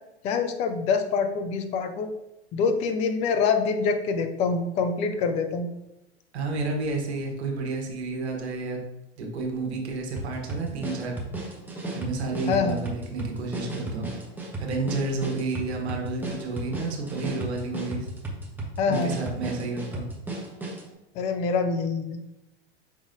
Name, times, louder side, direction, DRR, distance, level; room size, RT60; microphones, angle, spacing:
voice 1, 0.2-2.1 2.5-5.7 12.5-12.8 18.8-19.2 21.2-22.2, left 5 dB, 20° left, 7 dB, 0.3 m, -25 dB
voice 2, 6.3-8.8 9.2-11.2 11.9-14.1 14.6-18.1 18.9-20.1, right 3 dB, 70° right, 0 dB, 1.1 m, -30 dB
sound 1, 10.2-20.9, right 2 dB, 5° right, 0.7 m, -35 dB
5.1 x 3.1 x 2.6 m, 0.91 s
hypercardioid pair, 100°, 34 cm